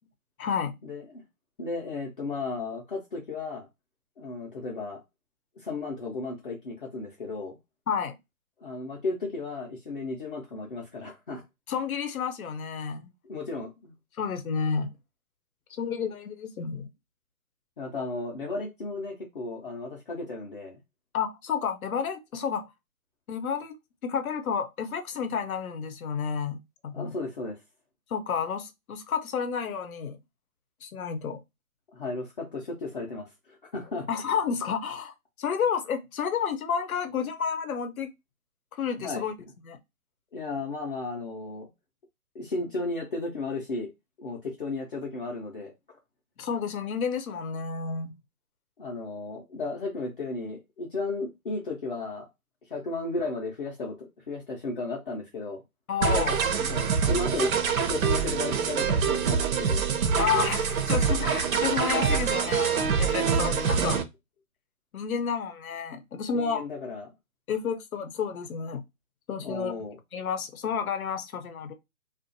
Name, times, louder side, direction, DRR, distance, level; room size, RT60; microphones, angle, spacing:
voice 1, 0.4-0.8 7.9-8.1 11.7-13.1 14.2-14.9 15.7-16.9 21.1-22.6 23.3-23.8 24.0-27.1 28.1-30.2 30.8-31.4 34.1-38.1 38.8-39.3 39.6-39.8 46.4-48.1 55.9-56.9 60.2-64.0 64.9-66.6 67.5-68.8 69.3-69.7 70.1-71.7, left 6 dB, 70° left, 0.7 m, -30 dB
voice 2, 1.6-3.7 4.2-5.0 5.6-7.6 8.6-11.4 13.2-13.9 17.8-20.8 26.9-27.6 31.9-34.1 39.0-39.2 40.3-41.7 42.3-43.9 44.2-45.7 48.8-52.3 52.7-55.6 56.5-59.8 66.3-67.1 69.4-70.0, left 3 dB, 40° left, 0.6 m, -34 dB
sound 1, 56.0-64.0, right 6 dB, 70° right, 0.7 m, -25 dB
2.4 x 2.3 x 2.5 m
hypercardioid pair, 160°, 44 cm